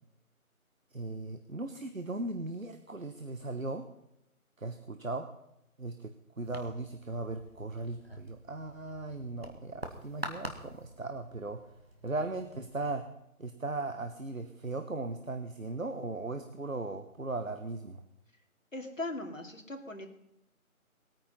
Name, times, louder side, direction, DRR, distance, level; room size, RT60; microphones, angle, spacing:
voice 1, 0.9-3.9 4.6-5.3 5.8-11.6 12.0-13.1 13.4-18.0, right 2 dB, 65° right, 8 dB, 1.3 m, -38 dB
sound 1, 6.4-13.0, right 1 dB, 45° right, 1.7 m, -47 dB
voice 2, 18.7-20.1, left 2 dB, 60° left, 3 dB, 2.6 m, -39 dB
19.5 x 9.3 x 5.6 m, 0.84 s
figure-of-eight pair, 175°, 43 cm